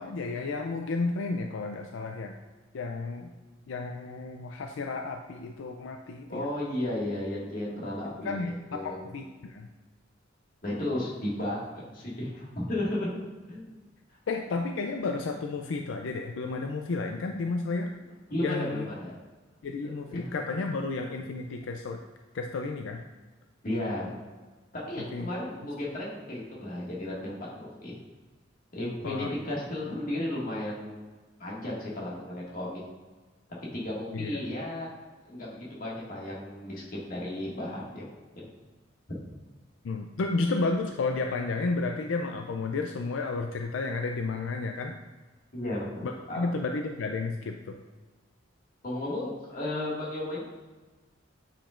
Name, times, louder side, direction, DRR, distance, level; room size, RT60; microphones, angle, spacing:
voice 1, 0.0-2.3 2.7-3.3 3.7-6.5 8.2-8.5 8.8-9.7 14.3-17.9 18.4-18.8 19.6-22.0 22.3-23.0 25.1-25.3 29.0-29.3 34.1-34.4 39.8-44.9 46.0-47.8, left 3 dB, 85° left, 4 dB, 0.4 m, -32 dB
voice 2, 6.3-9.0 10.6-13.1 13.5-13.7 18.3-19.1 19.8-20.3 23.6-24.1 24.7-27.9 28.7-31.0 31.4-32.8 33.7-34.9 35.3-38.1 38.4-38.5 39.1-39.2 45.5-46.5 48.8-50.4, left 1 dB, 45° left, -5 dB, 1.9 m, -34 dB
8.7 x 5.1 x 2.5 m, 1.3 s
head